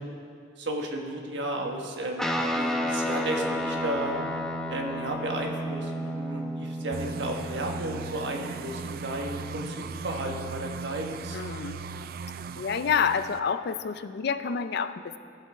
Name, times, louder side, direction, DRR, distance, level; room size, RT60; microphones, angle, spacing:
voice 1, 0.6-4.1 4.7-11.4, right 1 dB, 70° right, 1 dB, 1.4 m, -33 dB
Guitar, 2.2-9.8, equal, ahead, 0.7 m, -32 dB
sound 1, 6.9-13.4, right 4 dB, 55° right, 0.4 m, -38 dB
voice 2, 11.3-11.8 12.6-15.2, left 6 dB, 60° left, 12 dB, 0.4 m, -28 dB
17.5 x 7.4 x 3.5 m, 2.3 s
head